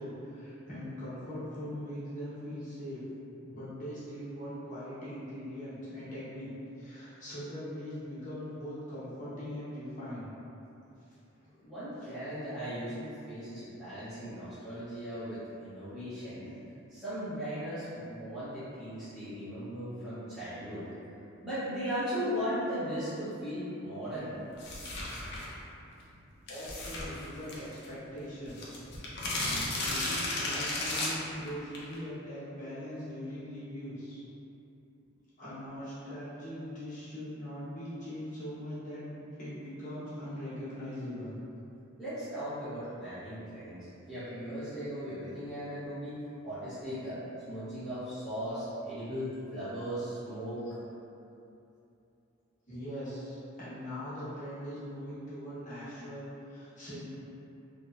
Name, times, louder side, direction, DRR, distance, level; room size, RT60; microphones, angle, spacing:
voice 1, 0.0-3.0 3.4-6.5 6.8-10.3 11.1-11.5 12.0-12.1 26.5-28.6 29.8-34.2 35.4-41.3 50.6-50.7 52.7-57.2, equal, 35° left, -12 dB, 0.8 m, -41 dB
voice 2, 11.6-16.6 16.9-20.9 21.4-24.3 42.0-46.2 46.4-47.2 47.5-50.7, equal, 5° right, -17 dB, 0.6 m, -37 dB
sound 1, 24.6-25.5 26.5-27.9 28.2-28.3 28.5-32.0, left 2 dB, 55° left, 0.4 m, -34 dB
2.8 x 2.1 x 2.3 m, 2.8 s
head